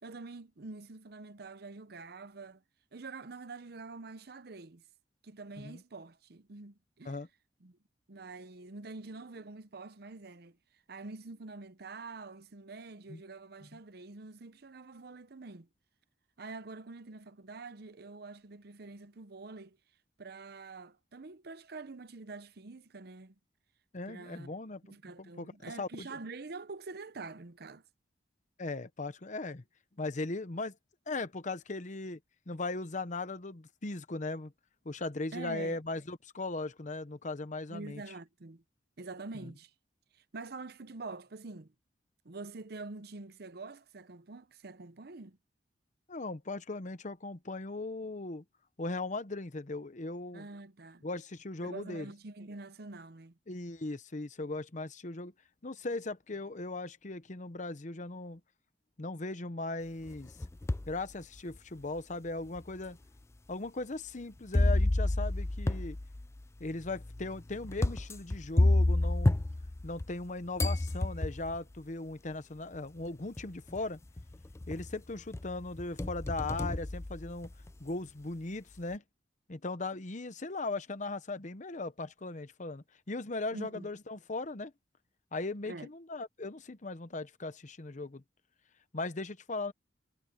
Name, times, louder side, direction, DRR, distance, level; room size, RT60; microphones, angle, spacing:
voice 1, 0.0-2.6 2.9-4.8 5.2-7.2 7.6-7.8 8.1-10.6 10.9-15.7 16.4-19.8 20.2-23.3 24.1-24.5 24.8-27.8 35.3-35.8 37.7-38.6 39.0-39.7 40.1-41.7 42.2-45.4 50.3-51.0 51.6-53.4 83.5-83.9 85.7-85.9, right 3 dB, 60° right, 0.8 m, -46 dB
voice 2, 23.9-25.5 25.8-26.2 28.6-29.6 30.0-30.8 31.1-32.2 32.5-34.5 34.8-38.0 46.1-48.4 48.8-50.5 51.0-52.1 53.5-55.3 55.6-58.4 59.0-60.3 60.9-63.0 63.5-66.0 66.6-69.4 69.8-74.0 74.7-77.5 77.8-79.0 79.5-84.7 85.3-88.2 88.9-89.7, left 2 dB, 45° left, 0.9 m, -38 dB
sound 1, 60.1-61.0 61.6-61.7 62.6-62.7 64.5-70.3 70.6-71.6 72.7-72.8 73.4-73.8 74.2-75.0 75.3-77.7, left 2 dB, 15° left, 0.4 m, -30 dB
head